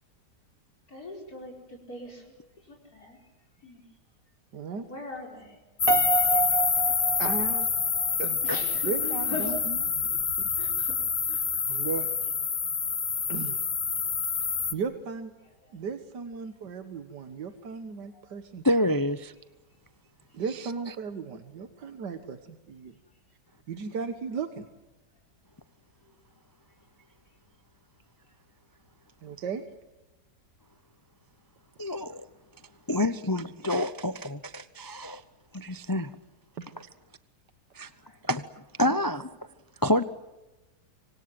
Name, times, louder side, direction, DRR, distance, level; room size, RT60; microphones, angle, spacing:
voice 1, 0.9-3.3 3.6-3.8 4.7-5.6 8.4-9.6 10.6-11.0 11.3-11.8 15.6-15.7 18.1-18.2 26.0-26.1 28.2-28.3 38.0-38.2, left 2 dB, 60° left, 5.3 m, -41 dB
voice 2, 4.5-4.9 6.8-6.9 7.2-7.7 8.2-8.4 8.8-10.5 11.7-12.1 13.3-13.6 14.7-15.3 15.7-18.6 20.3-22.9 23.7-24.7 29.2-29.6 36.5-36.7 38.8-39.0, right 5 dB, 85° right, 2.0 m, -36 dB
sound 1, 5.8-14.7, left 6 dB, 40° left, 1.3 m, -27 dB
Piano, 5.9-8.1, right 5 dB, 35° right, 1.4 m, -28 dB
voice 3, 18.6-19.3 31.8-32.2 32.9-35.2 35.5-36.1 37.7-37.9 38.3-38.4 38.8-39.3 39.8-40.0, left 1 dB, 20° left, 0.5 m, -27 dB
26.5 x 25.0 x 7.7 m
omnidirectional pair, 1.8 m